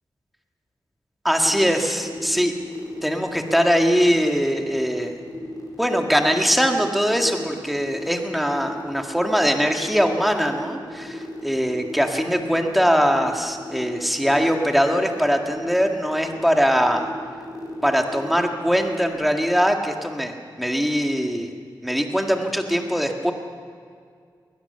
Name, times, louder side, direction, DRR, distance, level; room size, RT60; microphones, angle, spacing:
voice 1, 1.2-2.5 3.0-5.1 5.8-17.1 17.8-20.3 20.6-21.5 21.8-23.3, equal, ahead, 3 dB, 1.9 m, -21 dB
sound 1, 1.4-19.1, left 1 dB, 55° left, 4.9 m, -35 dB
20.5 x 20.0 x 6.9 m, 2.1 s
wide cardioid pair, 125°, 8 cm